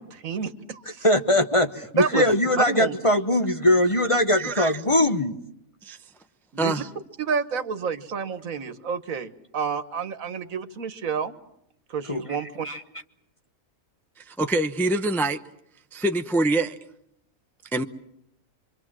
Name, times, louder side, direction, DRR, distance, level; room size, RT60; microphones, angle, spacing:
voice 1, 0.0-1.1 2.0-2.3 2.6-3.0 6.5-6.7 7.2-11.3 11.9-12.7, right 6 dB, 75° right, 1.6 m, -29 dB
voice 2, 1.0-5.4 12.1-12.2 12.6-12.8, left 1 dB, 25° left, 1.1 m, -21 dB
voice 3, 4.4-4.7 5.8-6.0 6.6-6.9 14.2-15.4 15.9-16.8 17.7-17.8, right 2 dB, ahead, 0.6 m, -25 dB
26.5 x 24.0 x 7.5 m
omnidirectional pair, 1.5 m